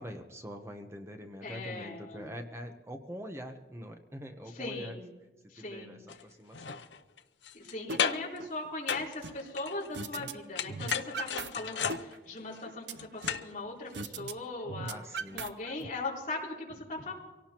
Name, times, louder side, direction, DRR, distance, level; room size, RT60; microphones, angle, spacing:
voice 1, 0.0-5.0 5.6-6.8 14.9-15.4, equal, 15° right, 5 dB, 0.9 m, -44 dB
voice 2, 1.4-2.3 4.5-5.1 5.5-6.0 7.5-15.0 15.3-17.1, left 2 dB, 45° left, -5 dB, 3.8 m, -39 dB
sound 1, 6.1-6.2 6.5-7.7 8.0-8.4 8.9-10.3 10.6-13.5 13.9-14.0, left 7 dB, 80° left, 0.7 m, -34 dB
sound 2, 7.9-8.0 8.4-9.4 9.9-10.3 10.6-11.5 11.8-13.5 13.9-14.3 14.6-15.9, right 4 dB, 80° right, 0.7 m, -39 dB
24.5 x 17.5 x 3.0 m, 1.2 s
head